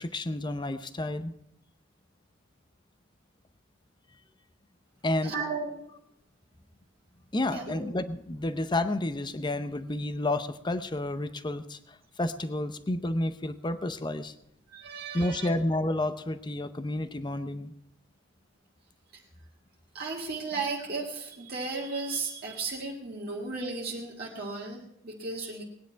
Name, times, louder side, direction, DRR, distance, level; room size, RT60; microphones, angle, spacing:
voice 1, 0.0-1.3 5.0-5.3 7.3-14.3 15.1-17.7, left 1 dB, 25° left, 11 dB, 0.7 m, -30 dB
voice 2, 5.2-5.8 7.5-7.8 14.7-15.6 19.9-25.6, right 4 dB, 50° right, -3 dB, 1.8 m, -35 dB
19.5 x 9.8 x 4.6 m, 0.80 s
head